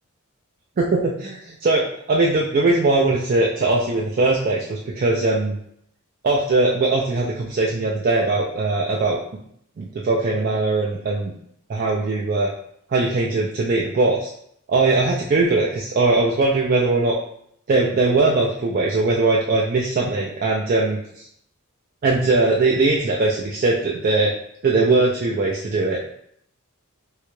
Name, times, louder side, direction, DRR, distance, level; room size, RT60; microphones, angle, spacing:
voice 1, 0.8-5.6 6.2-9.2 9.8-11.3 11.7-12.5 12.9-14.3 14.7-17.2 17.7-21.3 22.0-24.3 24.6-26.1, right 3 dB, 40° right, -3 dB, 0.4 m, -20 dB
3.7 x 2.1 x 3.0 m, 0.68 s
head